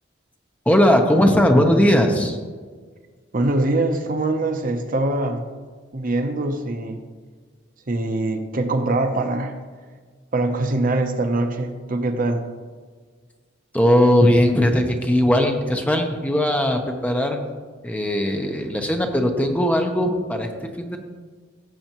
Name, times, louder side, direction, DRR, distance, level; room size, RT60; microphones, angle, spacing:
voice 1, 0.7-2.4 13.7-17.5 17.8-20.5 20.8-21.0, equal, 5° left, 3 dB, 0.8 m, -18 dB
voice 2, 3.3-5.4 5.9-7.1 7.9-9.6 10.3-12.5, right 2 dB, 45° right, 6 dB, 0.7 m, -23 dB
15.5 x 7.7 x 3.0 m, 1.5 s
head